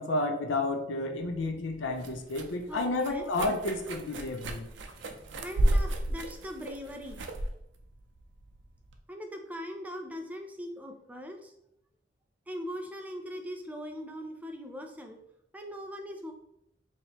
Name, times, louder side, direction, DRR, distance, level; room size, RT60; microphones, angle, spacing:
voice 1, 0.0-4.7, left 2 dB, 90° left, 4 dB, 0.6 m, -31 dB
sound 1, 1.2-9.0, right 1 dB, 75° right, 0.5 m, -33 dB
voice 2, 2.7-3.3 4.6-7.2 9.1-11.5 12.5-15.2 15.5-16.3, equal, 10° right, 4 dB, 0.4 m, -41 dB
4.7 x 2.9 x 2.9 m, 0.78 s
head